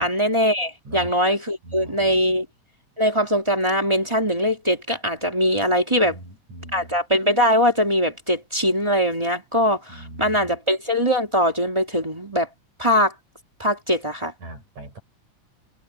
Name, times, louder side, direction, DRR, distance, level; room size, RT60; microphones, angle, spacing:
voice 1, 0.0-2.5 3.0-6.2 6.7-12.5 12.8-13.1 13.6-14.3, equal, 10° right, 2.1 m, -21 dB
voice 2, 1.6-2.2 6.0-7.0 9.9-10.6 14.4-15.0, right 1 dB, 60° right, 8.9 m, -40 dB
omnidirectional pair, 3.7 m